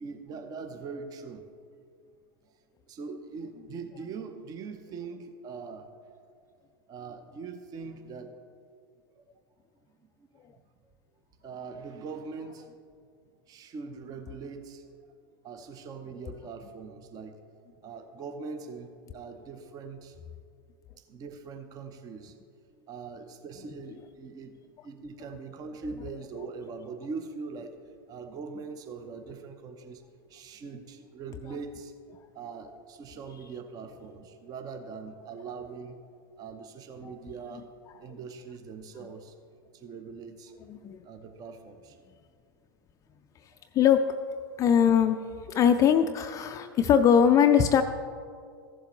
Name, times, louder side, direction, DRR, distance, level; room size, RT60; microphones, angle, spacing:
voice 1, 0.0-1.4 2.9-6.1 6.9-8.4 9.2-9.3 10.2-10.3 11.4-12.7 13.5-14.8 15.4-17.4 17.8-20.2 21.0-22.4 22.7-30.0 30.3-31.9 32.3-36.0 36.4-37.7 38.0-39.4 39.7-40.5 41.0-42.0, right 4 dB, 35° right, 8 dB, 0.7 m, -42 dB
voice 2, 43.7-44.1 44.6-45.2 45.5-47.8, left 8 dB, 30° left, 7 dB, 0.3 m, -21 dB
14.5 x 7.3 x 3.0 m, 2.3 s
hypercardioid pair, 95°, 12 cm